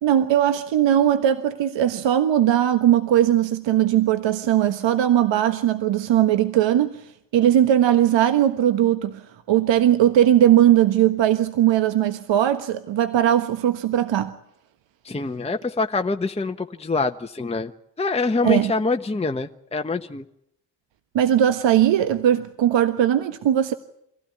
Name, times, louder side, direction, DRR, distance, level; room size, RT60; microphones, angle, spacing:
voice 1, 0.0-14.3 18.4-18.7 21.1-23.7, right 11 dB, 60° right, 1.4 m, -19 dB
voice 2, 15.0-17.7 18.0-20.2, left 3 dB, 10° left, 1.2 m, -25 dB
25.5 x 16.0 x 9.6 m
hypercardioid pair, 50°, 49 cm